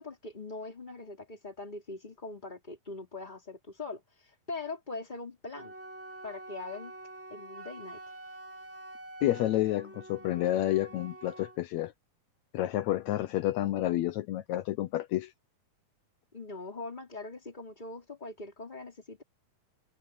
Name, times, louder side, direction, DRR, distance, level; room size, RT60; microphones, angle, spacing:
voice 1, 0.0-5.7 6.2-6.9 7.3-8.0 16.3-19.2, left 3 dB, 15° left, 3.3 m, -42 dB
Wind instrument woodwind instrument, 5.5-11.6, right 2 dB, 10° right, 0.9 m, -46 dB
voice 2, 9.2-11.9 12.5-15.3, left 14 dB, 80° left, 1.6 m, -29 dB
omnidirectional pair, 4.1 m